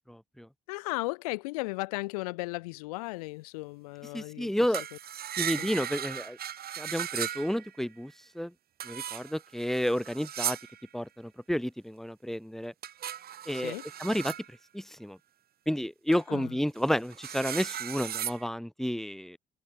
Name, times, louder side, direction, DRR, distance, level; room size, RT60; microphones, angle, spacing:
voice 1, 0.7-4.5 5.6-5.7 13.6-13.9 16.1-16.6, left 24 dB, 80° left, 7.2 m, -36 dB
voice 2, 4.1-4.8 5.4-6.4 6.8-8.5 8.8-10.6 10.9-12.7 13.5-14.3 14.7-15.2 15.7-19.4, equal, ahead, 5.0 m, -31 dB
sound 1, 4.7-7.8 8.8-10.9 12.8-14.5 16.1-16.2 16.8-18.5, right 10 dB, 55° right, 3.1 m, -37 dB
hypercardioid pair, 50°, 19 cm